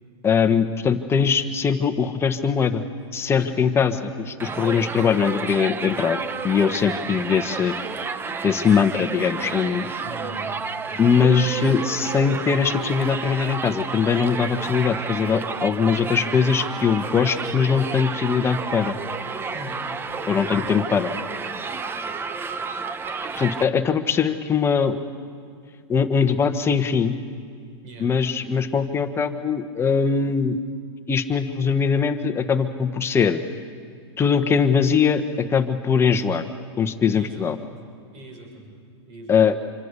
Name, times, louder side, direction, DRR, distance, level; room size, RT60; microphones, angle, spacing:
voice 1, 0.2-2.8 3.1-6.2 6.4-7.7 8.4-9.9 11.0-18.9 20.3-21.1 23.4-25.0 25.9-27.2 28.0-30.6 31.1-33.4 34.2-36.4 36.8-37.6 39.3-39.5, left 6 dB, 15° left, 8 dB, 1.3 m, -21 dB
voice 2, 3.4-3.7 10.0-10.5 10.9-11.0 19.5-19.8 27.8-28.1 28.4-28.5 37.1-37.7 38.1-38.7 39.1-39.4, right 1 dB, 45° right, 2 dB, 6.5 m, -40 dB
Crowd, 4.4-23.6, right 5 dB, 15° right, 0.7 m, -31 dB
26.5 x 24.0 x 6.9 m, 2.2 s
hypercardioid pair, 135°, 14 cm